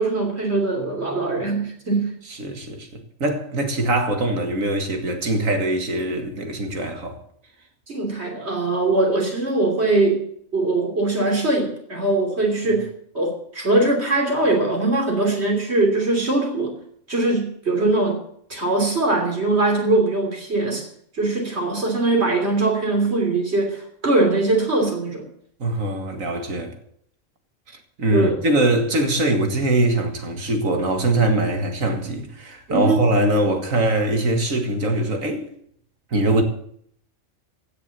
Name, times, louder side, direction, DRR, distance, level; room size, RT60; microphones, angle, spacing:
voice 1, 0.0-2.1 7.9-10.2 10.5-12.9 13.1-16.7 17.1-18.2 18.5-20.9 21.1-25.2 28.1-28.3 32.7-33.0, right 2 dB, 55° right, 3.5 m, -21 dB
voice 2, 2.4-7.2 25.6-26.8 28.0-35.5 36.1-36.4, right 1 dB, 85° right, 2.3 m, -22 dB
15.5 x 7.0 x 8.3 m
omnidirectional pair, 1.4 m